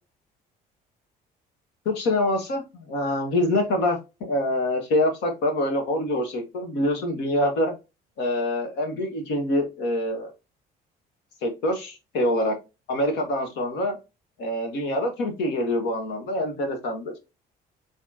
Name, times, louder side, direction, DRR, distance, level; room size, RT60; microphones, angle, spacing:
voice 1, 1.8-7.7 8.2-10.3 11.4-12.5 12.9-14.0 14.4-17.1, left 1 dB, 90° left, 4 dB, 1.6 m, -25 dB
4.6 x 3.4 x 2.8 m, 0.26 s
cardioid pair, 110°, 17 cm